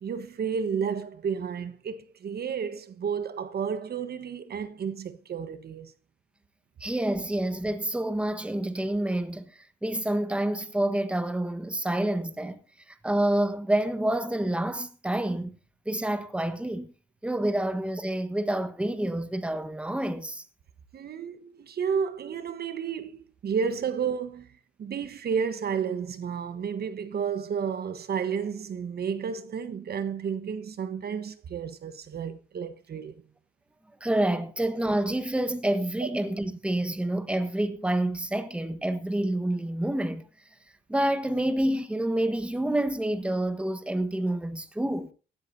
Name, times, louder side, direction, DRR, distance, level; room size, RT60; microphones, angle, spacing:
voice 1, 0.0-5.9 20.9-24.5 24.8-33.2 36.0-36.1, right 6 dB, 55° right, 1.2 m, -31 dB
voice 2, 6.8-12.6 12.9-15.6 15.8-16.9 17.2-20.4 34.0-40.3 40.9-45.1, right 1 dB, 5° right, 1.3 m, -28 dB
17.0 x 13.0 x 2.7 m
cardioid pair, 90°, 20 cm